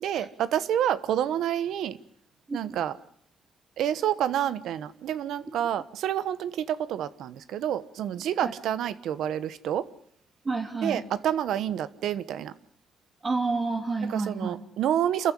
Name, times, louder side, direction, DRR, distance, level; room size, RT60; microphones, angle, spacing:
voice 1, 0.0-2.0 2.5-2.9 3.8-9.8 10.8-12.5 14.1-15.3, right 10 dB, 85° right, 1.1 m, -28 dB
voice 2, 2.5-2.8 8.4-8.5 10.4-11.0 13.2-14.5, right 3 dB, 30° right, 3.6 m, -29 dB
28.0 x 14.5 x 10.0 m
cardioid pair, 110°, 0 cm